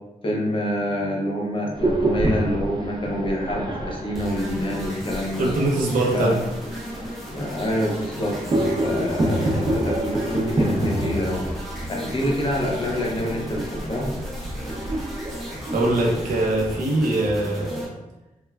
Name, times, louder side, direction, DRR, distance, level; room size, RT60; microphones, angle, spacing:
voice 1, 0.2-5.5 6.1-6.4 7.3-11.5 11.9-14.2, equal, 40° left, -1 dB, 0.6 m, -27 dB
sound 1, 1.7-16.8, right 1 dB, 30° right, 0.4 m, -28 dB
sound 2, 4.1-17.9, left 1 dB, ahead, 0.7 m, -36 dB
voice 2, 5.4-6.4 15.3-17.9, right 2 dB, 75° right, -1 dB, 0.6 m, -23 dB
3.0 x 2.2 x 2.3 m, 1.0 s
cardioid pair, 85°, 14 cm